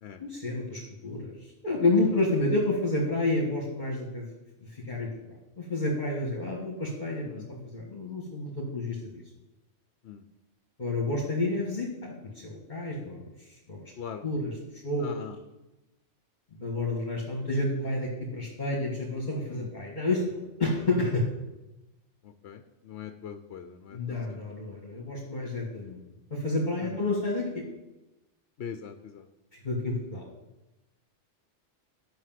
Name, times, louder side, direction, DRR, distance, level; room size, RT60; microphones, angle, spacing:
voice 1, 0.2-4.3 4.6-5.1 5.6-9.2 10.8-13.9 14.2-15.2 16.6-21.2 23.9-26.0 26.3-27.6 29.6-30.3, left 2 dB, 40° left, -3 dB, 1.9 m, -30 dB
voice 2, 15.0-15.4 19.5-19.7 22.2-24.4 26.8-27.0 28.6-29.3, left 7 dB, 65° left, 8 dB, 0.9 m, -42 dB
11.5 x 6.2 x 7.6 m, 1.0 s
omnidirectional pair, 1.2 m